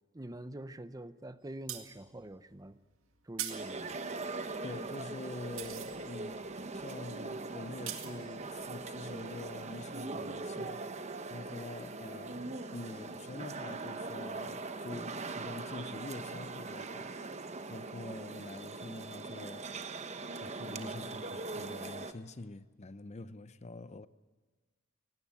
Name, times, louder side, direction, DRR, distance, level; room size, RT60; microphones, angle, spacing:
voice 1, 0.1-2.8 3.2-4.0, right 1 dB, 20° right, 0.7 m, -45 dB
sound 1, 1.4-10.0 10.4-10.5, right 11 dB, 75° right, 2.1 m, -45 dB
sound 2, 3.5-22.1, right 3 dB, 35° right, 1.1 m, -41 dB
voice 2, 4.6-17.2 17.7-19.9 20.4-24.1, left 2 dB, 35° left, 0.6 m, -46 dB
18.5 x 18.0 x 9.6 m
head